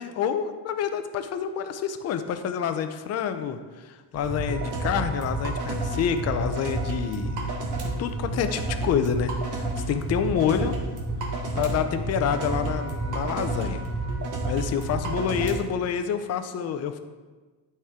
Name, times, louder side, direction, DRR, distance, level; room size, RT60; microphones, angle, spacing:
voice 1, 0.0-7.4 8.0-10.8 11.6-13.8 14.5-17.0, left 8 dB, 40° left, 8 dB, 0.5 m, -28 dB
sound 1, 4.1-15.5, right 2 dB, 45° right, 1.4 m, -30 dB
12.0 x 4.4 x 3.6 m, 1.3 s
cardioid pair, 165°, 42 cm